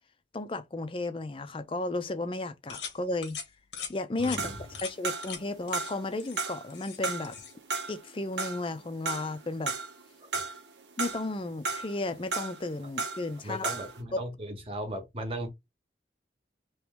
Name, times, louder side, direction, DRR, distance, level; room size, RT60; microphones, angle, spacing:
voice 1, 0.3-3.4 3.9-4.5 4.8-7.3 7.9-9.7 11.0-13.7 14.1-14.2, left 2 dB, 30° left, 0.5 m, -33 dB
sound 1, 2.7-3.0 3.2-3.5 3.7-3.9 4.2-4.4 4.7-4.9 5.2-5.4 5.7-5.9 6.2-7.0 7.2-7.5, left 7 dB, 85° left, 1.0 m, -40 dB
voice 2, 4.2-4.6 10.2-10.4 13.4-15.5, right 1 dB, 30° right, 1.0 m, -37 dB
sound 2, 4.4-5.5 5.7-6.7 7.0-10.0 10.3-11.3 11.6-13.3 13.6-14.0, right 4 dB, 80° right, 0.9 m, -34 dB
3.1 x 2.9 x 3.5 m
head